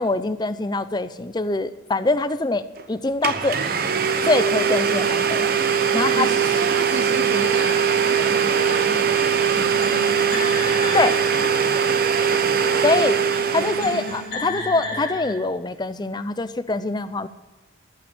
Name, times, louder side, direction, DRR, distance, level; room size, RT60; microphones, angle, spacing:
voice 1, 0.0-2.6 2.9-3.6 4.2-5.5 5.9-6.3 10.9-11.1 12.8-13.2 13.5-17.3, left 2 dB, 20° left, 12 dB, 0.5 m, -23 dB
Domestic sounds home sounds, 2.8-2.9 3.2-14.3, right 7 dB, 50° right, 0.8 m, -21 dB
voice 2, 6.1-9.8, right 2 dB, 80° right, 0 dB, 2.2 m, -32 dB
sound 1, 7.3-15.3, left 2 dB, 50° left, 3.5 m, -33 dB
14.0 x 6.0 x 9.1 m, 1.2 s
head